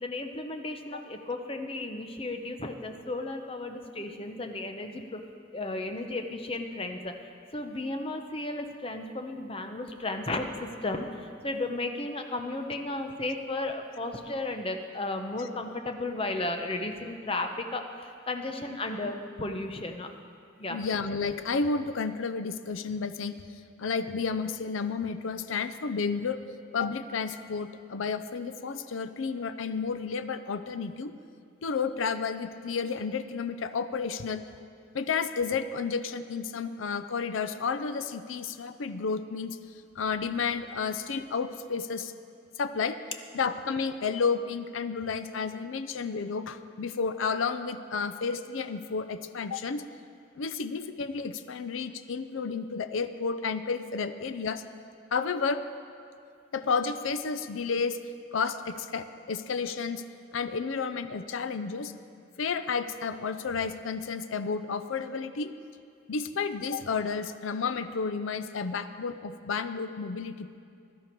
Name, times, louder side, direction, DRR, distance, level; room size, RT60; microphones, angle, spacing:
voice 1, 0.0-5.2 5.5-7.1 7.5-20.1 20.6-20.8, left 2 dB, 30° left, 5 dB, 0.8 m, -34 dB
voice 2, 20.7-23.4 23.8-26.4 26.7-31.2 31.6-34.4 34.9-39.6 40.0-42.1 42.6-43.0 43.3-49.8 50.4-54.6 55.1-55.6 56.5-58.0 58.3-60.0 60.3-61.9 62.4-65.5 66.1-70.6, left 5 dB, 80° left, 11 dB, 0.5 m, -31 dB
16.0 x 12.0 x 4.5 m, 2.4 s
head